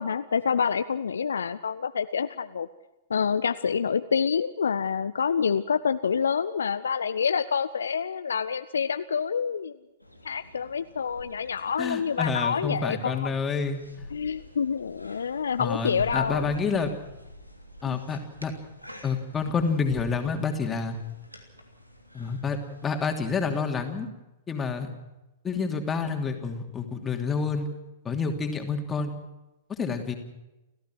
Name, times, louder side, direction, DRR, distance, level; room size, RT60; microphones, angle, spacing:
voice 1, 0.0-2.7 3.1-9.8 10.2-13.3 14.1-16.5 17.9-18.0, left 6 dB, 65° left, 12 dB, 0.7 m, -27 dB
sound 1, 10.0-23.6, equal, 90° right, 3.1 m, -47 dB
voice 2, 11.8-13.8 15.6-16.9 17.8-18.5 19.0-21.0 22.1-24.1 24.5-24.9 25.4-27.7 28.0-29.2 29.7-30.2, left 5 dB, 15° left, 4 dB, 2.9 m, -28 dB
30.0 x 14.5 x 6.2 m, 0.99 s
figure-of-eight pair, 105°, 0 cm